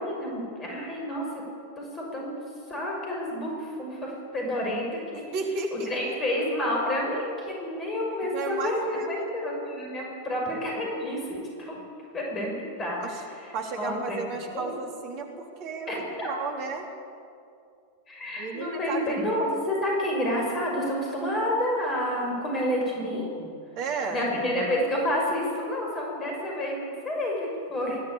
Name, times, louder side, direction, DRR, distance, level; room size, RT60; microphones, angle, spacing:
voice 1, 0.0-1.4 1.8-2.3 2.7-5.2 5.7-8.8 9.1-11.8 12.1-14.7 15.9-16.3 18.1-23.5 23.9-28.0, left 1 dB, 25° left, -2 dB, 6.1 m, -29 dB
voice 2, 5.3-6.2 8.3-9.3 13.0-13.1 13.5-15.3 15.6-15.9 16.2-16.8 18.4-19.0 23.8-24.2, right 4 dB, 40° right, 2 dB, 3.1 m, -33 dB
21.5 x 15.5 x 8.6 m, 2.4 s
figure-of-eight pair, 90°, 0 cm